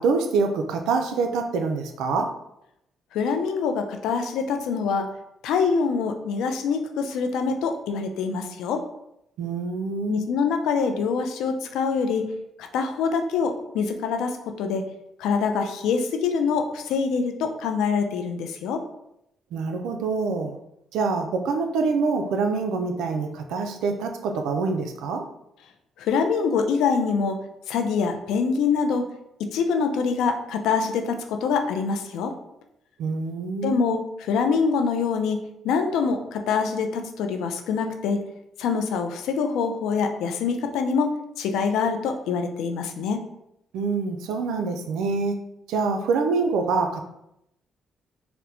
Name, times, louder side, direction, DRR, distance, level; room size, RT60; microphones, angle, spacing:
voice 1, 0.0-2.3 9.4-10.3 19.5-20.6 20.9-25.2 33.0-34.0 43.7-45.4 45.7-47.1, right 4 dB, 90° right, 4 dB, 0.4 m, -25 dB
voice 2, 3.1-5.1 5.4-8.8 10.1-12.3 12.6-14.8 15.2-18.8 26.0-27.4 27.7-29.1 29.5-32.3 33.6-35.4 35.6-38.2 38.6-43.2, left 5 dB, 90° left, 6 dB, 0.4 m, -25 dB
4.3 x 2.1 x 2.6 m, 0.81 s
cardioid pair, 90°, 0 cm